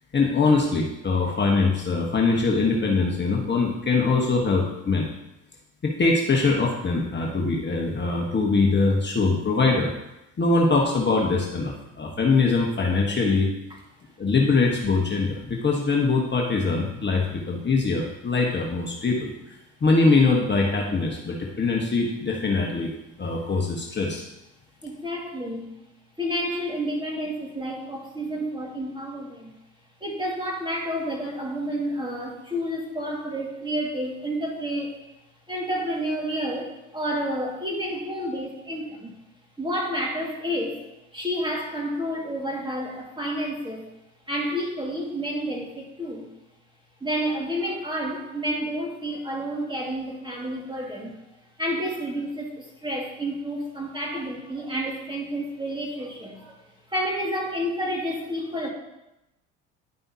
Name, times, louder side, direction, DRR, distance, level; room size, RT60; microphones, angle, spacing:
voice 1, 0.1-5.1 5.8-9.9 10.4-13.5 14.2-19.3 19.8-22.9 23.2-24.2, left 3 dB, 30° left, -1 dB, 1.3 m, -22 dB
voice 2, 24.8-25.7 26.2-29.5 30.0-35.0 35.5-39.1 39.6-40.8 41.1-43.9 44.3-46.3 47.0-51.1 51.6-56.5 56.9-58.7, equal, 15° right, -1 dB, 2.1 m, -30 dB
10.5 x 5.5 x 2.8 m, 0.91 s
supercardioid pair, 70°, 36 cm